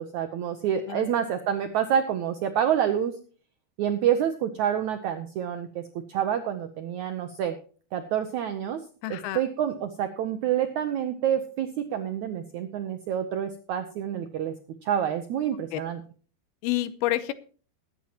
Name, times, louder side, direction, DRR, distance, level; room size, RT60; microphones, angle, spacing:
voice 1, 0.0-3.2 3.8-5.8 6.1-7.6 7.9-14.5 14.8-16.0, right 9 dB, 80° right, 8 dB, 1.7 m, -28 dB
voice 2, 9.0-9.4 15.7-15.8 16.6-17.3, left 15 dB, 80° left, 14 dB, 2.6 m, -28 dB
21.0 x 9.1 x 2.9 m, 0.40 s
omnidirectional pair, 4.5 m